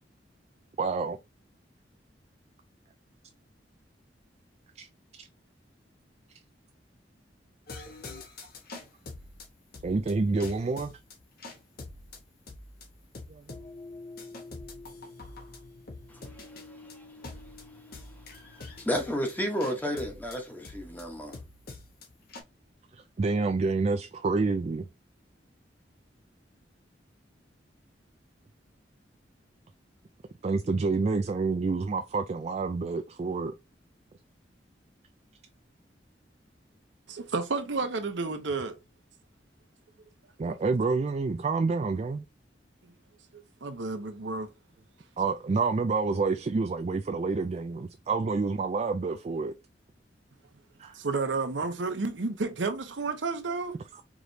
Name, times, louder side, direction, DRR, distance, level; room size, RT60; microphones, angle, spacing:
voice 1, 0.8-1.2 4.8-4.9 5.1-5.3 9.8-11.0 13.5-13.6 22.9-24.9 30.4-33.5 40.4-42.2 45.2-49.5 50.8-51.0, right 4 dB, 35° right, 0.3 m, -28 dB
sound 1, 7.7-22.4, left 3 dB, 55° left, 1.1 m, -45 dB
voice 2, 18.8-21.4, equal, 10° left, 1.0 m, -31 dB
voice 3, 37.1-38.8 42.8-42.9 43.3-44.5 50.9-53.8, right 3 dB, 85° right, 0.8 m, -31 dB
4.9 x 3.1 x 2.7 m
head